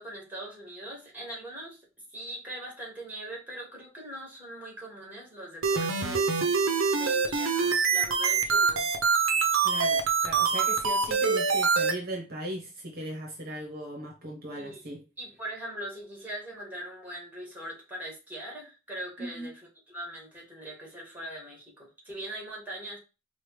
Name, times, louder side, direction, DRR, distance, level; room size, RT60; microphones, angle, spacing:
voice 1, 0.0-1.8 2.1-6.3 6.9-8.9 14.5-14.8 15.2-23.0, right 1 dB, 10° right, 1.8 m, -41 dB
sound 1, 5.6-11.9, right 5 dB, 75° right, 0.7 m, -25 dB
voice 2, 9.6-15.0 19.2-19.5, right 1 dB, 50° right, 1.0 m, -38 dB
4.8 x 2.4 x 3.3 m
head